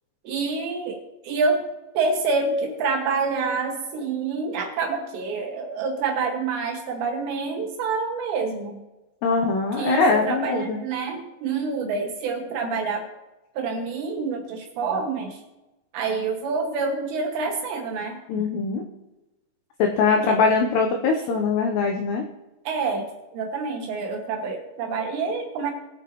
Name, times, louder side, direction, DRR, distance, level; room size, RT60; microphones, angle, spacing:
voice 1, 0.2-1.7 1.9-8.8 9.8-13.1 13.5-15.4 15.9-18.2 20.3-20.4 22.7-25.7, right 4 dB, 70° right, 2 dB, 2.8 m, -27 dB
voice 2, 9.2-10.8 18.3-18.8 19.8-22.2, left 4 dB, 85° left, 3 dB, 2.4 m, -22 dB
20.0 x 7.3 x 3.0 m, 1.0 s
omnidirectional pair, 6.0 m